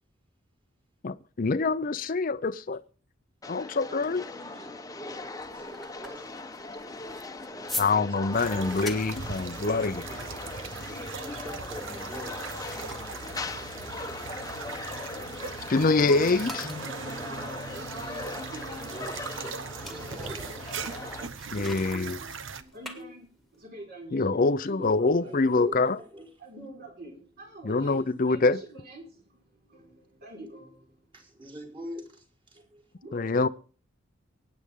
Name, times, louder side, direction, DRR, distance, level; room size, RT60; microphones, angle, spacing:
voice 1, 1.0-2.8 3.5-4.2 7.8-10.0 15.7-16.6 21.5-22.2 24.1-26.0 27.6-28.6 33.1-33.5, left 3 dB, 45° left, 0.6 m, -25 dB
sound 1, 3.4-21.3, left 3 dB, 20° left, 1.0 m, -40 dB
voice 2, 3.7-6.5 7.2-8.9 10.1-10.5 11.1-14.3 18.9-20.6 24.8-26.3 27.7-28.1 31.1-32.6, equal, 25° right, 4.3 m, -45 dB
sound 2, 5.2-15.7 15.9-23.6, left 2 dB, ahead, 2.0 m, -44 dB
sound 3, 8.3-22.6, right 5 dB, 70° right, 1.0 m, -39 dB
voice 3, 9.4-9.8 10.1-11.4 16.6-20.6 20.8-24.4 24.7-25.3 25.9-31.0 32.5-33.5, right 1 dB, 50° right, 4.8 m, -47 dB
23.5 x 9.6 x 3.7 m
head